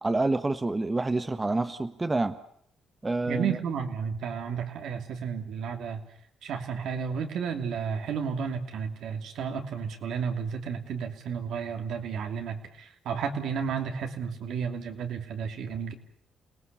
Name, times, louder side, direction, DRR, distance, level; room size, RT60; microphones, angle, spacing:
voice 1, 0.0-2.4 3.0-3.6, right 2 dB, 20° right, 9 dB, 1.2 m, -27 dB
voice 2, 3.3-6.0 6.4-15.9, right 6 dB, 75° right, 4 dB, 3.0 m, -32 dB
29.0 x 18.5 x 6.9 m, 0.69 s
cardioid pair, 90°, 0 cm